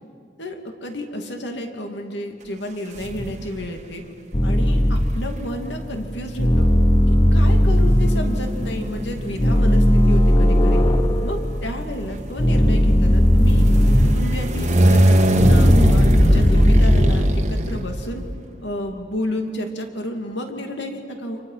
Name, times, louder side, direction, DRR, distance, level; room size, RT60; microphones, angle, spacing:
voice 1, 0.4-4.0 4.4-6.7 7.3-10.8 11.2-13.7 14.0-18.3 18.6-21.4, left 1 dB, 65° left, 4 dB, 2.7 m, -31 dB
sound 1, 3.0-3.7 4.7-18.4, right 1 dB, 35° right, 1.5 m, -22 dB
sound 2, 4.3-5.3 6.4-11.6 12.4-14.5 15.4-17.4, equal, 25° left, 0.9 m, -17 dB
29.5 x 27.0 x 5.9 m, 2.5 s
head